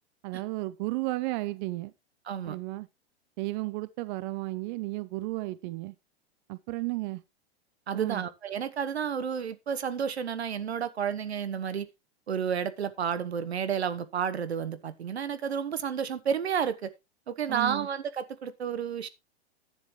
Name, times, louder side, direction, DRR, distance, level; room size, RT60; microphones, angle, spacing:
voice 1, 0.2-1.9 2.5-2.9 3.4-5.9 6.5-7.2 7.9-8.2 17.5-17.9, right 20 dB, 50° right, 0.7 m, -33 dB
voice 2, 2.3-2.6 7.9-11.9 12.3-16.9 17.3-19.1, right 7 dB, 85° right, 1.3 m, -31 dB
11.0 x 9.8 x 3.2 m
hypercardioid pair, 105°, 31 cm